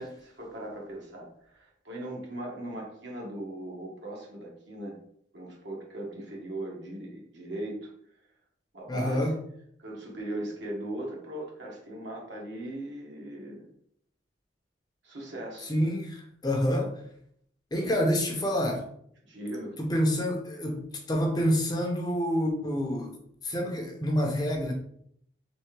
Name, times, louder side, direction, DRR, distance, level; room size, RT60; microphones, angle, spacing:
voice 1, 0.0-5.0 5.3-7.9 8.7-9.3 9.8-13.7 15.0-15.7 19.2-19.8, right 1 dB, 70° right, -2 dB, 1.2 m, -39 dB
voice 2, 8.9-9.4 15.6-16.9 17.7-18.9 19.8-23.1 23.4-24.7, equal, 20° left, 2 dB, 0.5 m, -27 dB
3.3 x 3.3 x 3.2 m, 0.69 s
head